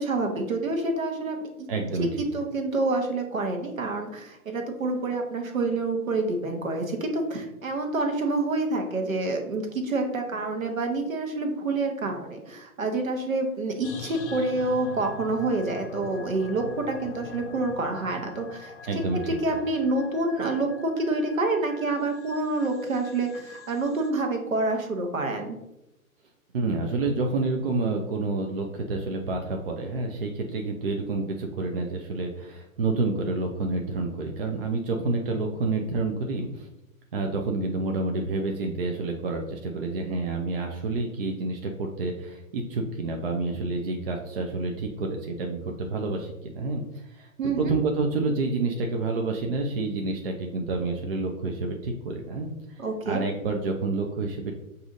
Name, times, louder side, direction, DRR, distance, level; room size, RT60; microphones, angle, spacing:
voice 1, 0.0-1.7 2.0-25.6 47.4-47.7 52.8-53.2, right 2 dB, 65° right, 3 dB, 1.0 m, -28 dB
voice 2, 1.7-2.2 18.8-19.4 26.5-36.7 37.1-47.3 47.6-54.5, right 3 dB, 45° right, 2 dB, 0.5 m, -29 dB
sound 1, 13.8-24.1, left 5 dB, 50° left, 0.6 m, -43 dB
6.7 x 2.7 x 2.5 m, 0.91 s
figure-of-eight pair, 120°, 43 cm